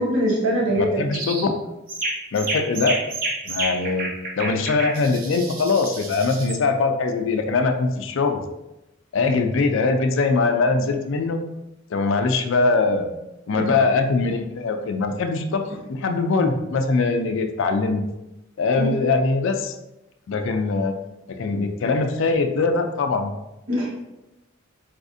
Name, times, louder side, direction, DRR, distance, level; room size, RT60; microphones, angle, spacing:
voice 1, 0.0-1.2 13.5-13.7 18.8-18.9 23.7-24.0, equal, 90° right, -5 dB, 1.1 m, -23 dB
voice 2, 0.8-1.6 2.3-3.0 3.5-4.1 4.4-8.4 9.1-11.4 11.9-13.1 13.5-18.0 18.6-19.7 20.3-20.9 21.4-23.3, left 3 dB, 65° left, 6 dB, 0.4 m, -22 dB
sound 1, 1.1-1.5 1.9-6.6, right 2 dB, 45° right, 0.6 m, -30 dB
4.1 x 2.5 x 2.5 m, 0.96 s
head